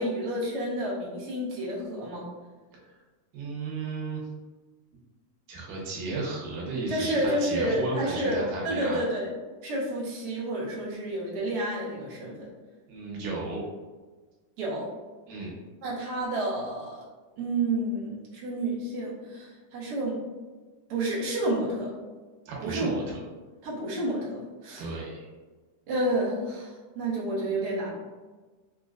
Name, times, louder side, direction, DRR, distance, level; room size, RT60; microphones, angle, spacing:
voice 1, 0.0-2.3 6.9-9.3 9.6-12.5 14.6-14.9 15.8-17.0 17.4-20.2 20.9-21.9 22.6-22.9 23.6-24.9 25.9-27.9, right 1 dB, 65° right, -5 dB, 1.5 m, -30 dB
voice 2, 3.3-4.2 5.5-9.0 12.9-13.6 15.3-15.5 22.5-23.2 24.8-25.3, right 3 dB, 85° right, -4 dB, 2.5 m, -34 dB
5.3 x 2.2 x 2.3 m, 1.3 s
omnidirectional pair, 3.6 m